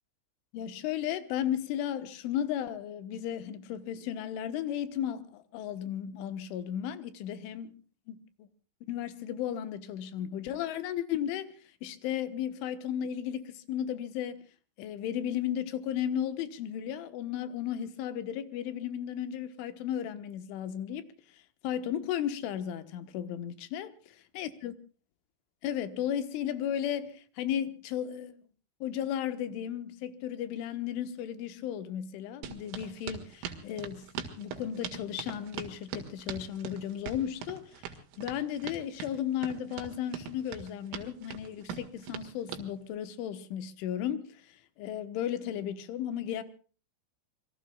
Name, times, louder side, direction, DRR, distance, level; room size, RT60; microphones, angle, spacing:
voice 1, 0.5-7.8 8.1-8.5 8.9-11.5 11.8-14.4 14.8-21.1 21.6-23.9 24.4-24.7 25.6-28.4 28.8-34.1 34.4-37.8 38.2-46.4, left 10 dB, 80° left, 3.6 m, -34 dB
sound 1, 32.4-42.7, right 7 dB, 85° right, 4.6 m, -41 dB
27.5 x 22.5 x 2.3 m
omnidirectional pair, 5.6 m